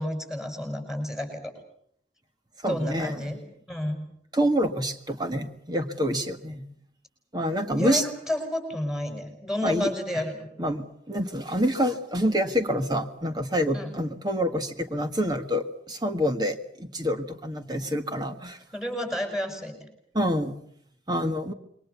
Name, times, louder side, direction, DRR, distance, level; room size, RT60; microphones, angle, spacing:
voice 1, 0.0-1.5 2.7-3.4 3.7-4.0 7.7-10.5 13.7-13.9 18.7-19.9, left 1 dB, 5° right, 6 dB, 7.0 m, -30 dB
voice 2, 2.6-3.4 4.3-6.6 7.3-8.0 9.6-9.9 10.6-18.6 20.1-20.5 21.1-21.5, equal, 25° right, 6 dB, 1.8 m, -27 dB
28.0 x 23.5 x 7.1 m, 0.68 s
head